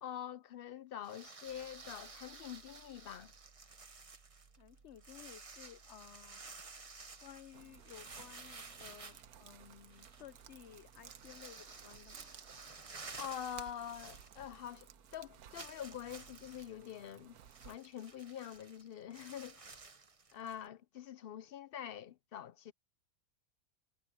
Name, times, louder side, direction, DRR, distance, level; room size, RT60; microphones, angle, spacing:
voice 1, 0.0-3.3 13.2-17.4 17.6-19.7 20.3-22.7, left 10 dB, 90° left, 0.5 m, -45 dB
sound 1, 1.0-14.8 15.1-15.2 15.5-20.7, right 4 dB, 25° right, 0.9 m, -53 dB
sound 2, 1.4-17.2, right 5 dB, 45° right, 1.2 m, -66 dB
voice 2, 4.5-6.4 7.2-12.3, left 10 dB, 55° left, 0.9 m, -56 dB
sound 3, 7.5-17.8, right 9 dB, 80° right, 1.4 m, -58 dB
omnidirectional pair, 1.6 m